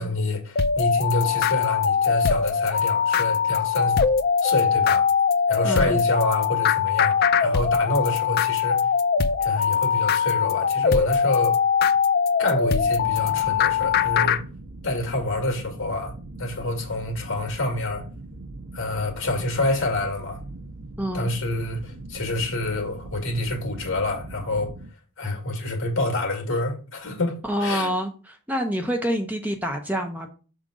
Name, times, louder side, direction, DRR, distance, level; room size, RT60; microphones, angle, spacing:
voice 1, 0.0-4.0 4.4-5.1 5.5-8.8 9.4-11.6 12.4-14.4 14.8-18.0 18.7-20.4 21.1-24.7 25.2-27.9, left 2 dB, 65° left, 2.0 m, -27 dB
sound 1, 0.6-14.4, left 6 dB, 45° left, 0.3 m, -22 dB
voice 2, 5.6-6.0 21.0-21.3 27.4-30.3, equal, 5° right, 0.6 m, -27 dB
sound 2, 12.8-24.9, right 2 dB, 75° right, 0.8 m, -40 dB
6.5 x 3.7 x 4.9 m
head